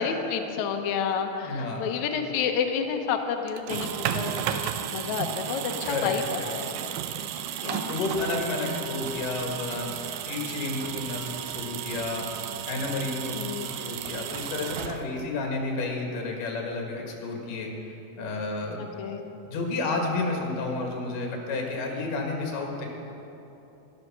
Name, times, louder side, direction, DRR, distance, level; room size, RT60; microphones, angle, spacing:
voice 1, 0.0-6.2 6.5-7.0 7.6-7.9 13.3-13.7 19.0-19.2, left 7 dB, 80° left, 4 dB, 1.7 m, -30 dB
voice 2, 1.4-1.9 5.9-6.5 7.9-18.9 19.5-22.9, left 3 dB, 65° left, 1 dB, 3.2 m, -31 dB
sound 1, 3.5-15.4, right 10 dB, 80° right, 2.2 m, -34 dB
13.5 x 12.5 x 5.8 m, 3.0 s
omnidirectional pair, 4.3 m